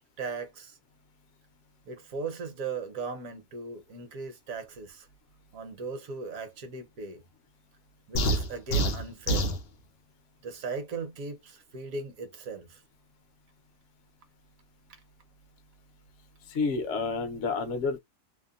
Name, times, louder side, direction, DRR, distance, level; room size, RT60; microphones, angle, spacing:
voice 1, 0.2-0.8 1.9-5.1 5.5-7.2 8.1-9.5 10.4-12.8 14.9-15.0, right 4 dB, 65° right, 1.1 m, -38 dB
sound 1, 8.1-9.6, right 1 dB, 85° left, 0.5 m, -26 dB
voice 2, 16.4-18.0, left 4 dB, 60° left, 0.8 m, -29 dB
2.8 x 2.1 x 2.3 m
omnidirectional pair, 1.7 m